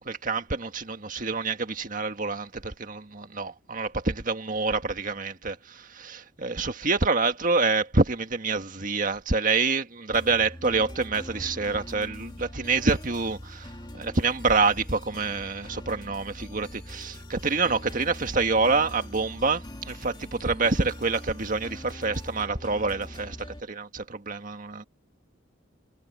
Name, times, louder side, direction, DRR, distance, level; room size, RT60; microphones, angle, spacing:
voice 1, 0.1-24.8, right 4 dB, 45° right, 1.7 m, -27 dB
sound 1, 10.1-23.6, left 1 dB, 25° left, 2.0 m, -42 dB
head